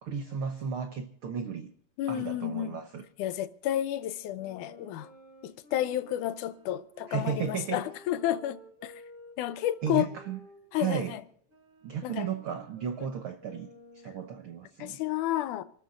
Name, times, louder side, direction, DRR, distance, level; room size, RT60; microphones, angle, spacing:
voice 1, 0.0-1.7 2.1-3.0 7.1-7.8 9.8-10.4 10.8-11.2 11.8-13.7 13.9-15.0, right 7 dB, 80° right, 1.2 m, -34 dB
voice 2, 2.0-2.8 3.2-5.1 5.4-9.0 9.4-10.1 10.7-11.2 12.0-12.3 14.8-15.6, left 13 dB, 80° left, 2.1 m, -31 dB
sound 1, 4.3-11.1 11.5-14.5, equal, 20° right, 5.5 m, -53 dB
28.0 x 13.0 x 2.5 m
omnidirectional pair, 3.7 m